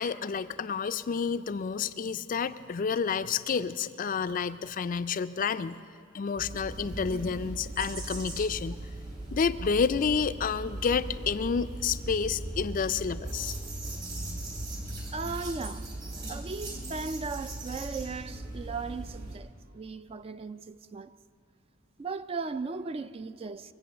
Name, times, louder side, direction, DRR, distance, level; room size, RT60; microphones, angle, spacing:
voice 1, 0.0-5.8 6.1-8.8 9.3-13.5, left 6 dB, 45° left, 0.4 m, -29 dB
sound 1, 6.4-19.4, right 1 dB, 50° right, 3.2 m, -38 dB
voice 2, 15.1-15.9 16.3-21.1 22.0-23.7, right 4 dB, 30° right, 0.3 m, -37 dB
23.5 x 8.4 x 6.7 m
head